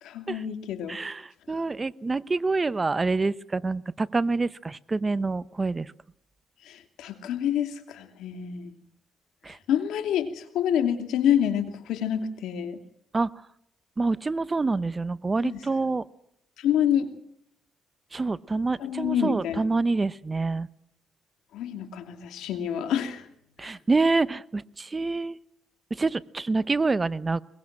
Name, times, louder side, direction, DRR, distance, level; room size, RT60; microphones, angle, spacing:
voice 1, 0.0-1.0 6.6-8.7 9.7-12.8 15.4-15.6 16.6-17.1 18.8-19.6 21.5-23.3 23.6-23.7, left 9 dB, 85° left, 8 dB, 2.8 m, -27 dB
voice 2, 0.9-5.9 9.4-9.6 13.1-13.3 14.0-16.0 18.1-20.7 23.6-25.4 25.9-27.4, right 3 dB, 25° right, 16 dB, 0.8 m, -27 dB
22.5 x 22.5 x 7.6 m, 0.72 s
cardioid pair, 90°, 0 cm